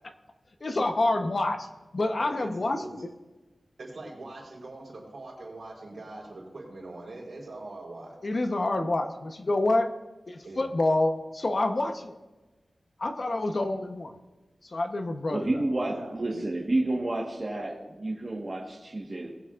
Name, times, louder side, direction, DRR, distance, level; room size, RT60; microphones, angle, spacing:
voice 1, 0.6-1.7 1.9-3.1 8.2-9.9 10.3-12.2 13.0-14.2 14.6-15.6, left 2 dB, 50° left, 6 dB, 0.9 m, -27 dB
voice 2, 2.2-2.5 2.8-2.9 3.8-8.2 10.4-10.7 15.9-16.4, right 2 dB, 75° right, -2 dB, 4.1 m, -42 dB
voice 3, 15.3-19.3, right 2 dB, 35° right, -2 dB, 1.4 m, -30 dB
20.5 x 7.7 x 2.5 m, 1.1 s
wide cardioid pair, 90°, 0 cm